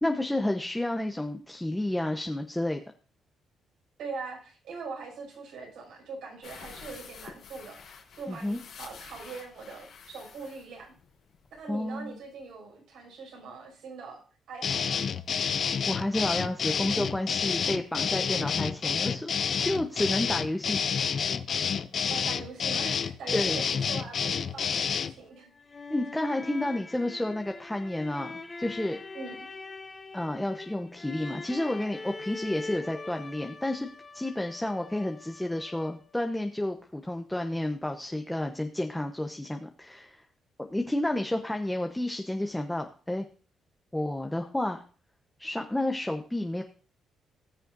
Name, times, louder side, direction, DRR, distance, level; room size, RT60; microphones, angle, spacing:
voice 1, 0.0-2.8 8.3-8.6 11.7-12.2 15.9-19.3 19.6-20.8 23.3-23.6 25.9-29.0 30.1-33.9 34.1-40.2 40.6-43.2 43.9-44.8 45.4-46.6, left 1 dB, 10° left, 4 dB, 0.9 m, -31 dB
voice 2, 4.0-10.9 11.5-14.2 14.5-15.1 22.1-25.5 29.1-29.5, right 4 dB, 80° right, -1 dB, 6.0 m, -42 dB
sound 1, 6.4-11.7 12.0-12.1 12.4-12.5, left 6 dB, 75° left, 3.5 m, -49 dB
sound 2, 14.6-25.1, left 7 dB, 55° left, 0.6 m, -29 dB
sound 3, 25.3-36.2, left 3 dB, 35° left, 1.7 m, -43 dB
19.0 x 6.7 x 2.6 m, 0.40 s
cardioid pair, 90°, 0 cm